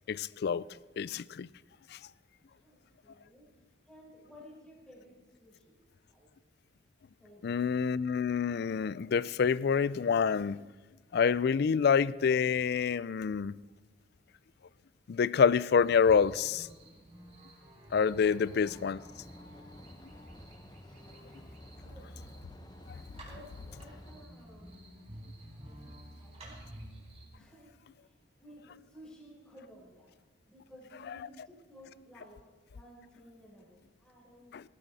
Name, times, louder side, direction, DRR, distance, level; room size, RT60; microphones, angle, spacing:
voice 1, 0.1-0.6 1.0-1.5 1.9-2.0 7.4-10.7 11.1-13.6 15.1-16.7 17.9-19.0 34.5-34.6, left 6 dB, 60° left, 0.4 m, -27 dB
voice 2, 2.5-3.5 3.8-6.3 7.2-7.6 18.2-18.4 19.5-20.0 20.8-21.1 21.8-22.1 23.2-26.5 27.3-30.1 30.4-32.4 32.7-34.6, equal, 5° left, 4.9 m, -56 dB
sound 1, 15.8-27.3, right 1 dB, 35° right, 4.3 m, -51 dB
sound 2, 18.0-24.3, left 1 dB, 20° left, 0.8 m, -53 dB
18.5 x 15.5 x 4.1 m
head